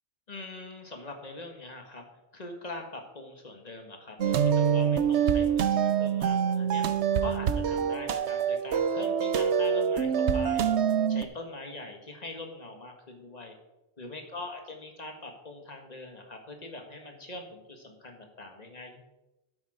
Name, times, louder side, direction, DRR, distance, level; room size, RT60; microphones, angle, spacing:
voice 1, 0.3-2.1 2.3-10.7 11.1-13.6 14.0-19.0, left 2 dB, 40° left, 3 dB, 1.8 m, -43 dB
sound 1, 4.2-11.2, right 7 dB, 90° right, 1.0 m, -25 dB
11.5 x 8.4 x 5.0 m, 0.99 s
omnidirectional pair, 1.1 m